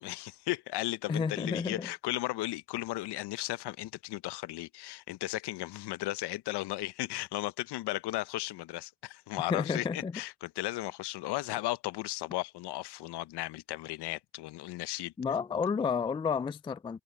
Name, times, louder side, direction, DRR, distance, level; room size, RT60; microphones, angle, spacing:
voice 1, 0.0-15.1, left 17 dB, 60° left, 1.0 m, -35 dB
voice 2, 1.1-1.9 9.4-10.1 15.2-17.0, left 6 dB, 10° left, 0.3 m, -31 dB
supercardioid pair, 80°, 45 cm